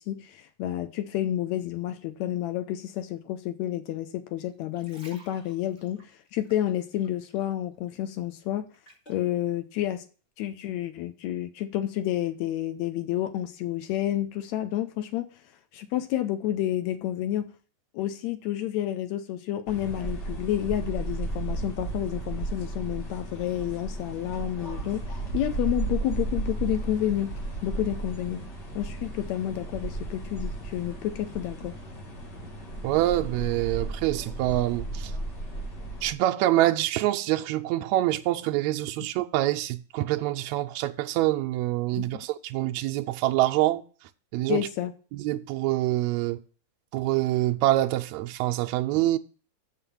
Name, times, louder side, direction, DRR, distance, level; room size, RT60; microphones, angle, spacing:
voice 1, 0.0-6.0 6.3-8.7 9.1-10.0 10.4-15.3 15.7-17.5 17.9-25.0 25.3-27.3 27.6-28.4 28.8-31.8 42.0-42.1 44.5-44.9, left 12 dB, 80° left, 1.8 m, -30 dB
sound 1, 4.5-7.6 7.9-9.3 9.9-10.0, right 1 dB, 20° left, 2.7 m, -54 dB
sound 2, 19.7-36.1, right 2 dB, 40° left, 2.0 m, -34 dB
voice 2, 32.8-35.1 36.0-43.8 44.3-44.7 45.1-46.4 46.9-49.2, right 15 dB, 80° right, 1.8 m, -25 dB
7.2 x 5.7 x 7.0 m
omnidirectional pair, 3.4 m